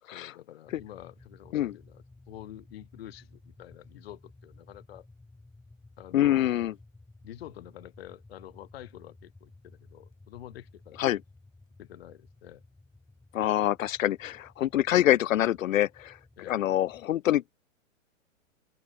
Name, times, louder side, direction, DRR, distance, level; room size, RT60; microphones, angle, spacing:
voice 1, 0.1-5.1 6.0-6.5 7.2-11.0 11.8-12.6 16.4-16.7, left 13 dB, 50° left, 4.9 m, -48 dB
sound 1, 0.7-17.1, left 2 dB, 5° left, 4.0 m, -55 dB
voice 2, 6.1-6.7 11.0-11.2 13.3-16.2 16.5-17.6, left 12 dB, 80° left, 0.6 m, -25 dB
open air
hypercardioid pair, 160°, 40 cm